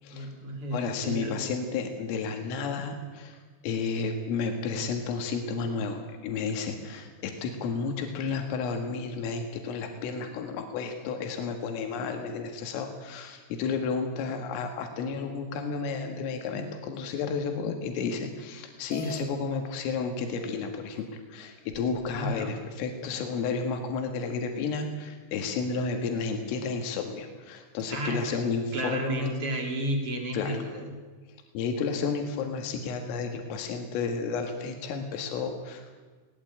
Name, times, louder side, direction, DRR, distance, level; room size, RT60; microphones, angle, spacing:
voice 1, 0.1-1.4 22.2-22.5 27.9-28.4 28.7-31.0, right 1 dB, 30° right, 3 dB, 3.5 m, -32 dB
voice 2, 0.7-3.4 3.6-29.3 30.3-30.6 31.5-35.9, left 5 dB, 85° left, 4 dB, 4.4 m, -32 dB
sound 1, 18.9-19.3 20.3-20.4 21.0-21.1 21.7-22.4, left 1 dB, 10° left, 0.4 m, -44 dB
20.5 x 19.0 x 8.7 m, 1.4 s
omnidirectional pair, 5.7 m